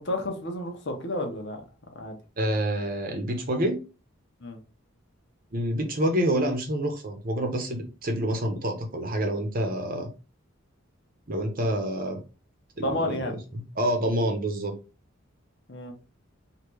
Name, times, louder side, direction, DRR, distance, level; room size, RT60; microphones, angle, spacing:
voice 1, 0.0-1.6 1.9-2.1 4.4-4.6 12.8-13.4 15.7-15.9, left 1 dB, 60° left, 1.1 m, -31 dB
voice 2, 2.4-3.8 5.5-10.1 11.3-12.2 12.8-14.7, right 1 dB, 45° right, 0.9 m, -27 dB
3.3 x 2.9 x 4.6 m
head